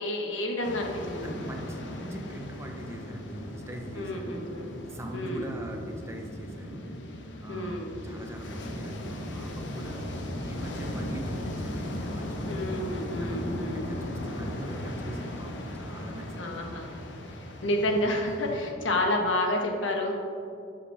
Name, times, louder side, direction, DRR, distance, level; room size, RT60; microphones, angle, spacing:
voice 1, 0.0-1.3 3.9-4.7 5.1-5.5 7.5-8.0 12.5-13.9 16.4-16.9 17.2-20.1, left 1 dB, 85° left, 2 dB, 1.3 m, -30 dB
sound 1, 0.6-18.7, left 1 dB, 70° left, 1.0 m, -37 dB
voice 2, 1.2-4.4 4.9-6.8 7.4-10.0 10.4-12.8 13.2-17.0 18.4-18.5, right 1 dB, 15° right, 2 dB, 0.8 m, -41 dB
12.0 x 7.2 x 3.5 m, 2.6 s
head